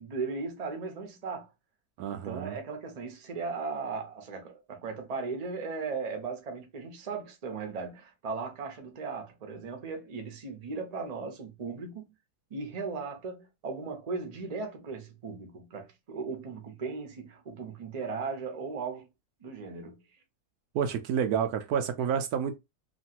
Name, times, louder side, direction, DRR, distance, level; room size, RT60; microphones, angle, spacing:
voice 1, 0.0-1.5 2.1-12.1 12.5-19.1 19.4-20.0, right 4 dB, 35° right, 0.6 m, -37 dB
voice 2, 2.0-2.6 20.7-22.6, right 8 dB, 75° right, 1.0 m, -29 dB
3.0 x 2.5 x 2.8 m
omnidirectional pair, 1.7 m